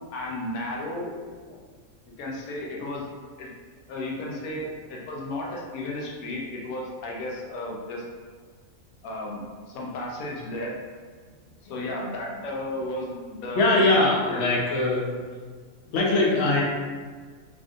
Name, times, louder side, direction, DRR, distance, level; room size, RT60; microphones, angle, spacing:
voice 1, 0.1-1.1 2.2-3.1 3.4-3.5 3.9-8.0 9.0-10.7 11.7-13.8 14.3-14.4, left 1 dB, 90° left, -2 dB, 1.1 m, -33 dB
voice 2, 13.6-15.1 15.9-16.6, left 2 dB, 60° left, -4 dB, 0.9 m, -21 dB
3.6 x 2.5 x 2.4 m, 1.5 s
omnidirectional pair, 1.5 m